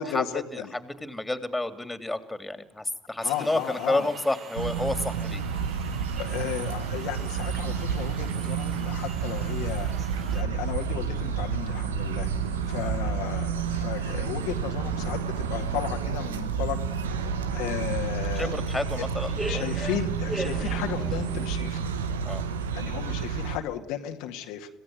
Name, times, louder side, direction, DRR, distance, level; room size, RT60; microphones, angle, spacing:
voice 1, 0.0-0.7 3.2-4.1 6.2-9.9 10.3-12.3 12.7-16.8 17.5-18.5 19.5-21.8 22.7-24.7, left 11 dB, 75° left, 4 dB, 2.2 m, -34 dB
voice 2, 0.5-5.4 12.8-12.9 18.3-19.6 22.2-22.4, left 2 dB, 10° left, 11 dB, 3.2 m, -30 dB
sound 1, 3.2-10.4, right 5 dB, 50° right, 3.9 m, -46 dB
sound 2, 4.5-23.6, right 6 dB, 90° right, 1.5 m, -30 dB
sound 3, 9.1-21.6, right 2 dB, 20° right, 3.8 m, -40 dB
27.0 x 17.0 x 9.5 m, 0.66 s
hypercardioid pair, 60°, 0 cm